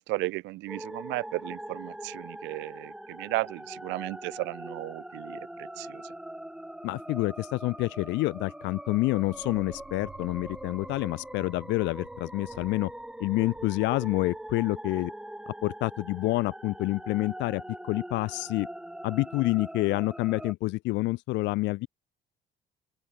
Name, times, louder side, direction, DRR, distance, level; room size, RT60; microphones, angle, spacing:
voice 1, 0.0-5.4 5.8-6.0, right 21 dB, 85° right, 0.6 m, -34 dB
sound 1, 0.7-20.5, right 1 dB, 5° right, 3.3 m, -42 dB
voice 2, 6.8-12.9 13.2-15.1 15.6-18.7 19.0-21.9, left 20 dB, 80° left, 0.6 m, -28 dB
sound 2, 9.2-15.1, right 7 dB, 30° right, 4.7 m, -53 dB
open air
cardioid pair, 170°, 18 cm